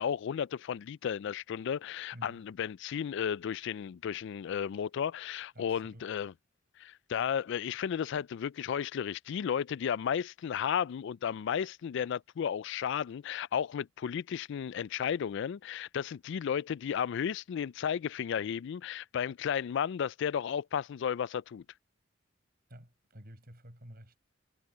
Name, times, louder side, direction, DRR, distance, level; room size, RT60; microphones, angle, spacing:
voice 1, 0.0-6.3 6.8-21.6, left 8 dB, 60° left, 0.3 m, -33 dB
voice 2, 2.1-2.4 5.5-6.1 22.7-24.2, equal, 50° right, 7.7 m, -51 dB
head